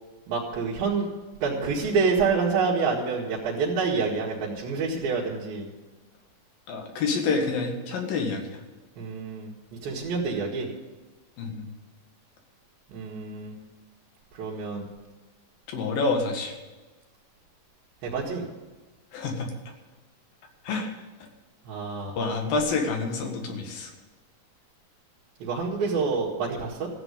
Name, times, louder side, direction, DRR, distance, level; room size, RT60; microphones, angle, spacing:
voice 1, 0.3-1.1 1.4-5.7 9.0-9.5 9.8-10.7 12.9-13.5 14.4-14.9 18.0-18.4 21.7-22.2 25.4-26.9, right 4 dB, 85° right, -6 dB, 3.5 m, -27 dB
voice 2, 6.7-8.6 11.4-11.7 15.7-16.5 19.1-19.5 20.7-20.9 22.2-23.9, left 4 dB, 80° left, 3 dB, 3.5 m, -28 dB
15.0 x 8.0 x 8.2 m, 1.2 s
omnidirectional pair, 4.1 m